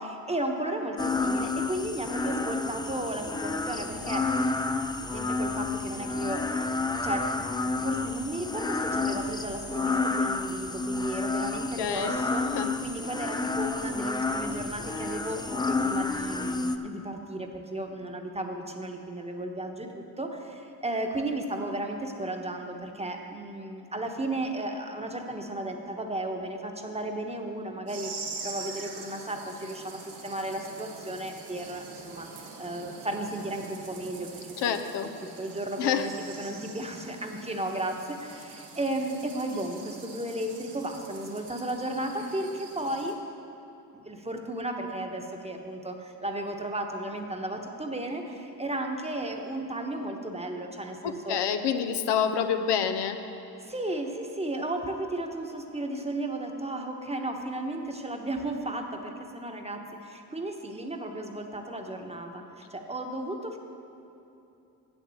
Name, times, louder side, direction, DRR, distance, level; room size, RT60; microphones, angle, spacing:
voice 1, 0.0-4.3 5.1-6.7 7.0-7.3 7.7-28.1 28.4-34.8 35.4-36.1 36.4-43.2 43.9-51.4 53.6-63.6, right 1 dB, 15° right, 3 dB, 1.1 m, -34 dB
sound 1, 1.0-16.8, left 3 dB, 10° left, 0.5 m, -30 dB
voice 2, 11.8-12.1 12.5-12.7 34.6-35.1 35.8-36.1 51.0-53.2, left 8 dB, 80° left, 8 dB, 0.7 m, -27 dB
sound 2, 27.9-43.1, right 4 dB, 85° right, 1.3 m, -44 dB
8.0 x 7.2 x 7.7 m, 2.9 s
cardioid pair, 65°, 40 cm